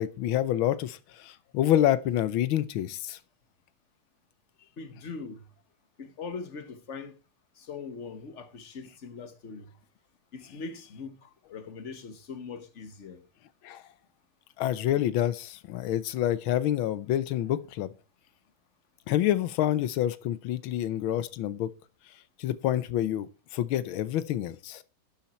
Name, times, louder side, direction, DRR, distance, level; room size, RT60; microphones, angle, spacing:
voice 1, 0.0-3.2 13.6-13.8 14.6-17.9 19.1-21.7 22.4-24.8, left 12 dB, 85° left, 1.6 m, -27 dB
voice 2, 4.8-5.4 6.0-7.2 7.6-9.7 10.3-13.2, left 4 dB, 40° left, 1.4 m, -41 dB
11.5 x 7.2 x 4.4 m
omnidirectional pair, 2.2 m